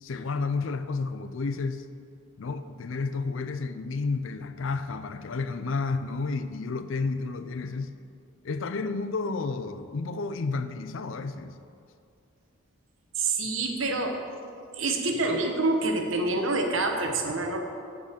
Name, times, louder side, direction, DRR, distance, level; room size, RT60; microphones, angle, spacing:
voice 1, 0.0-1.9 2.4-7.9 8.4-11.6, left 4 dB, 65° left, 10 dB, 0.5 m, -31 dB
voice 2, 13.2-14.2 14.7-17.6, right 2 dB, 70° right, 3 dB, 1.0 m, -27 dB
8.4 x 5.3 x 6.6 m, 2.4 s
head